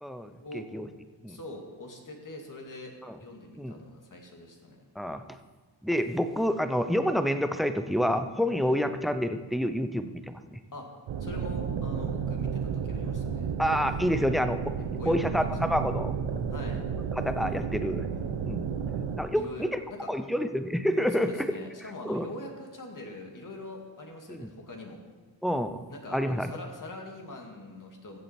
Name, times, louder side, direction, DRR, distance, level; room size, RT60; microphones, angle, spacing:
voice 1, 0.0-0.9 1.2-1.4 3.0-3.2 3.6-3.7 5.0-5.4 5.8-10.6 13.6-14.7 15.1-16.1 17.2-18.1 18.4-18.7 19.2-19.8 20.1-21.3 22.0-22.3 24.3-24.5 25.4-25.8 26.1-26.5, equal, ahead, 9 dB, 0.7 m, -28 dB
voice 2, 1.3-2.9 3.2-4.8 8.7-8.8 10.7-10.9 11.2-13.5 14.8-15.5 16.5-16.8 19.4-20.1 21.2-25.0 25.9-28.2, left 2 dB, 40° left, 1 dB, 2.3 m, -43 dB
sound 1, 11.1-19.2, right 6 dB, 75° right, 1.1 m, -32 dB
15.0 x 7.7 x 4.4 m, 1.4 s
cardioid pair, 85°, 47 cm